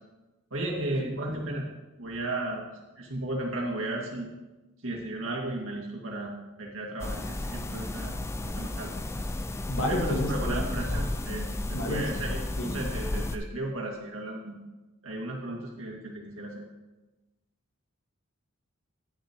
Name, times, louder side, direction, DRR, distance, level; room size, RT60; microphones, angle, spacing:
voice 1, 0.5-1.7 2.0-2.7 3.0-4.3 4.8-6.3 6.6-8.1 8.4-8.9 9.9-14.6 15.0-16.6, right 1 dB, 70° right, -1 dB, 2.0 m, -34 dB
sound 1, 7.0-13.4, left 1 dB, 15° left, 0.3 m, -33 dB
voice 2, 9.7-10.6 11.7-12.1 12.6-12.8, left 1 dB, 75° left, 1 dB, 1.6 m, -30 dB
10.0 x 9.9 x 2.9 m, 1.1 s
head